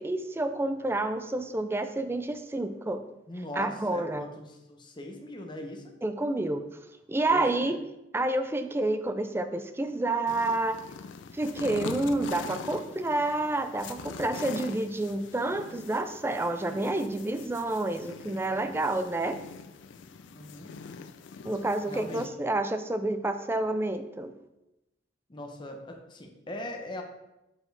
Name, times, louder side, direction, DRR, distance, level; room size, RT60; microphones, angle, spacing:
voice 1, 0.0-3.0 3.6-4.3 6.0-6.6 7.1-7.8 8.1-10.8 11.3-19.4 21.4-24.3, right 2 dB, 15° right, 9 dB, 0.3 m, -29 dB
voice 2, 3.3-5.9 7.3-7.7 18.5-18.8 19.6-19.7 20.3-20.7 21.9-22.3 25.3-27.0, left 1 dB, 25° left, 2 dB, 0.8 m, -40 dB
sound 1, 10.3-22.3, left 5 dB, 75° left, 0.4 m, -43 dB
7.0 x 4.6 x 3.3 m, 0.93 s
head